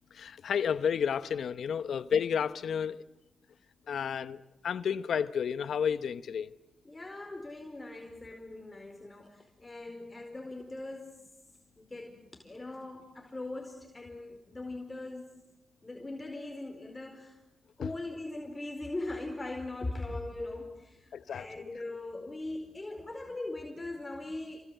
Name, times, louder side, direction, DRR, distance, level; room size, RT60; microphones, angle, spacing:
voice 1, 0.1-3.0 3.9-6.5 17.8-17.9 21.1-21.5, left 7 dB, 75° left, 0.9 m, -31 dB
voice 2, 6.8-11.2 11.8-15.4 15.8-17.4 17.8-24.6, left 2 dB, 25° left, 4.5 m, -40 dB
29.0 x 25.0 x 8.0 m
cardioid pair, 55°, 0 cm